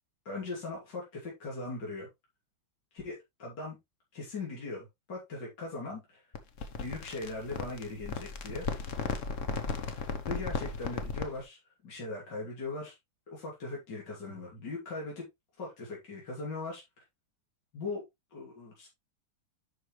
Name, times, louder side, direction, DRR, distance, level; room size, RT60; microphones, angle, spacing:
voice 1, 0.3-2.1 2.9-3.8 4.1-6.2 6.7-8.7 10.0-12.9 13.3-15.3 15.6-16.8 17.7-18.0 18.3-18.9, left 3 dB, 65° left, 3.7 m, -39 dB
sound 1, 6.3-11.4, left 4 dB, 50° left, 1.3 m, -36 dB
11.0 x 4.8 x 3.2 m
omnidirectional pair, 2.0 m